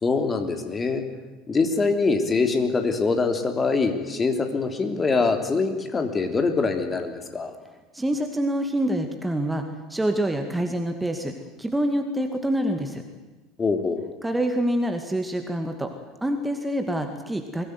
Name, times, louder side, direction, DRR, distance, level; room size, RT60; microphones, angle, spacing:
voice 1, 0.0-1.0 1.5-7.5 13.6-14.0, left 4 dB, 20° left, 5 dB, 3.1 m, -24 dB
voice 2, 7.9-11.3 11.6-13.0 14.2-15.9 16.2-17.6, right 1 dB, 10° right, 5 dB, 2.3 m, -26 dB
23.0 x 18.5 x 9.6 m, 1.2 s
figure-of-eight pair, 70°, 0 cm